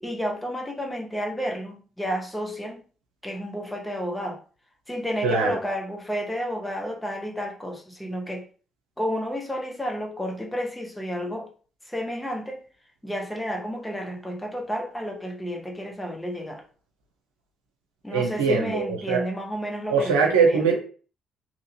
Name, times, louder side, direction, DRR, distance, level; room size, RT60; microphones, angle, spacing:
voice 1, 0.0-2.8 3.2-4.4 4.9-8.4 9.0-11.5 11.9-12.6 13.0-16.6 18.0-20.6, equal, 10° left, 1.0 m, -31 dB
voice 2, 5.2-5.6 18.1-19.2 19.9-20.7, right 5 dB, 85° right, 0.6 m, -22 dB
2.8 x 2.6 x 2.8 m
hypercardioid pair, 45°, 0 cm